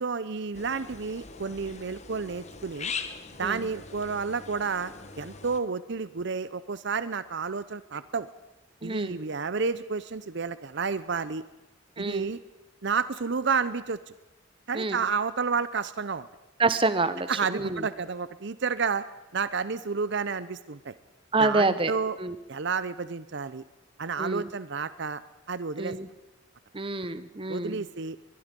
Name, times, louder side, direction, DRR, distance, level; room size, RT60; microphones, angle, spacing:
voice 1, 0.0-2.9 3.4-8.3 8.8-11.4 12.0-12.4 12.8-14.1 14.7-16.3 17.3-19.1 19.3-20.9 21.4-22.2 22.5-23.6 24.0-25.2 25.5-25.9 27.5-28.2, right 5 dB, 60° right, 15 dB, 0.7 m, -30 dB
sound 1, 0.5-5.6, left 5 dB, 35° left, 1.3 m, -41 dB
voice 2, 8.8-9.2 12.0-12.3 14.7-15.0 16.6-17.8 21.3-21.9 22.2-22.3 24.2-24.5 25.8-26.1 26.7-27.8, right 3 dB, 25° right, 13 dB, 1.0 m, -27 dB
22.5 x 22.0 x 5.3 m, 1.0 s
head